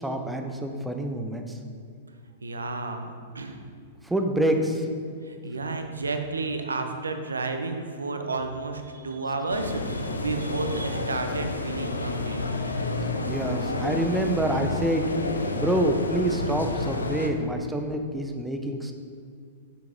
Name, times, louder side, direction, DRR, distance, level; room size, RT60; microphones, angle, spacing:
voice 1, 0.0-1.4 4.0-4.9 13.3-15.0 15.5-18.9, right 1 dB, 5° right, 4 dB, 0.6 m, -27 dB
voice 2, 2.4-3.6 5.2-12.7, right 3 dB, 80° right, 6 dB, 0.6 m, -32 dB
sound 1, 9.5-17.3, left 2 dB, 85° left, 0.5 m, -30 dB
5.9 x 5.8 x 3.8 m, 2.2 s
figure-of-eight pair, 100°, 0 cm